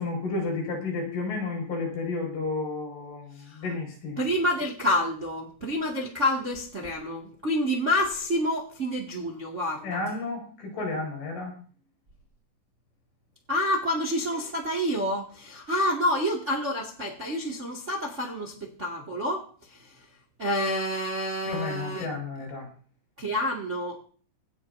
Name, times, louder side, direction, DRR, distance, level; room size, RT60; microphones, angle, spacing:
voice 1, 0.0-4.2 9.8-11.5 21.5-22.7, left 3 dB, 50° left, 1 dB, 7.4 m, -32 dB
voice 2, 4.2-10.0 13.5-19.9 20.4-22.1 23.2-24.0, left 1 dB, 50° right, 1 dB, 0.8 m, -28 dB
26.0 x 9.5 x 2.8 m, 0.42 s
omnidirectional pair, 5.7 m